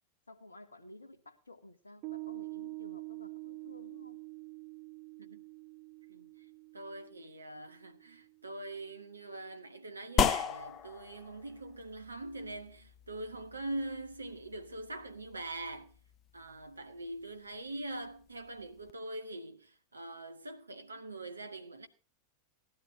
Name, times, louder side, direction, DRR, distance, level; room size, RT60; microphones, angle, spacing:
voice 1, 0.3-4.2, left 2 dB, 75° left, 1.3 m, -54 dB
Piano, 2.0-8.8, right 29 dB, 40° right, 1.1 m, -46 dB
voice 2, 6.7-15.9 16.3-21.9, right 2 dB, 80° right, 1.2 m, -43 dB
sound 1, 10.2-18.9, left 7 dB, 30° left, 0.7 m, -38 dB
18.0 x 12.0 x 2.7 m
figure-of-eight pair, 90°, 0 cm